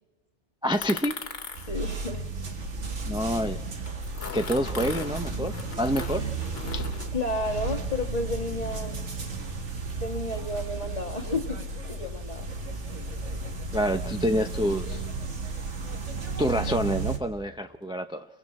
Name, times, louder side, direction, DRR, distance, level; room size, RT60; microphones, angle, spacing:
voice 1, 0.6-1.2 3.1-3.6 4.3-6.3 6.7-6.9 13.7-15.1 16.4-18.3, equal, 5° right, 6 dB, 0.4 m, -27 dB
sound 1, 0.7-3.4 3.9-7.1, left 4 dB, 60° left, 1.6 m, -39 dB
sound 2, 1.5-17.2, right 3 dB, 85° right, 2.0 m, -33 dB
voice 2, 1.7-2.3 7.1-9.0 9.9-12.5, left 2 dB, 35° left, 5 dB, 1.6 m, -32 dB
29.0 x 23.0 x 4.3 m, 1.2 s
omnidirectional pair, 1.2 m